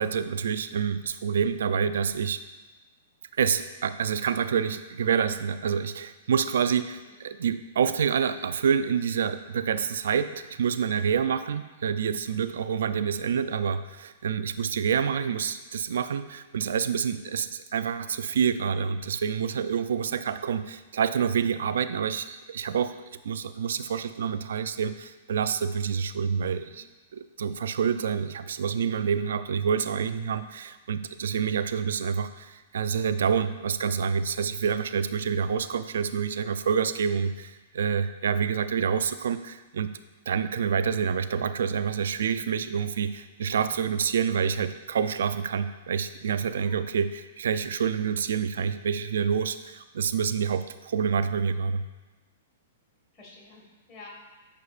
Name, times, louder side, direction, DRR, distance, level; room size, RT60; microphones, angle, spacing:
voice 1, 0.0-2.4 3.4-23.0 23.2-26.9 27.1-39.9 40.3-51.9, right 7 dB, 80° right, 12 dB, 0.3 m, -27 dB
voice 2, 6.8-7.2 12.5-12.6 17.2-17.3 26.7-26.9 30.2-30.4 46.5-46.8 53.1-54.1, left 3 dB, 25° left, -2 dB, 1.7 m, -51 dB
8.5 x 5.2 x 2.4 m, 1.2 s
hypercardioid pair, 140°, 0 cm